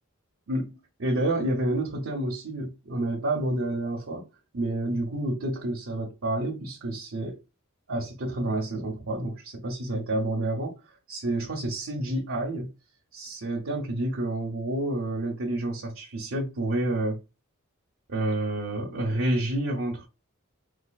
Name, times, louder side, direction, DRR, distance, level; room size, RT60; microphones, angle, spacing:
voice 1, 0.5-4.3 4.5-7.4 7.9-10.8 11.1-12.7 13.1-17.2 18.1-20.1, right 1 dB, 75° right, 0.8 m, -29 dB
4.3 x 2.4 x 2.3 m
head